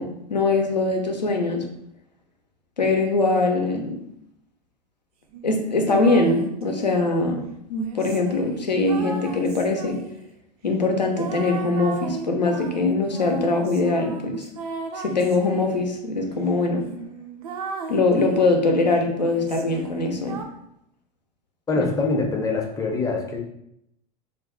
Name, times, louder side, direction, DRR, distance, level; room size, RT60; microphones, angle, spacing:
voice 1, 0.0-1.6 2.8-4.0 5.4-10.0 10.6-14.5 14.9-16.8 17.9-20.4 21.8-21.9, left 3 dB, 90° left, 3 dB, 0.5 m, -22 dB
sound 1, 5.3-7.1 7.8-10.3 11.2-15.8 16.4-16.5 16.8-18.6 19.2-20.5, right 4 dB, 65° right, 0.4 m, -36 dB
voice 2, 21.7-23.4, left 3 dB, 15° left, 1 dB, 0.5 m, -24 dB
2.4 x 2.2 x 3.6 m, 0.77 s
figure-of-eight pair, 85°, 21 cm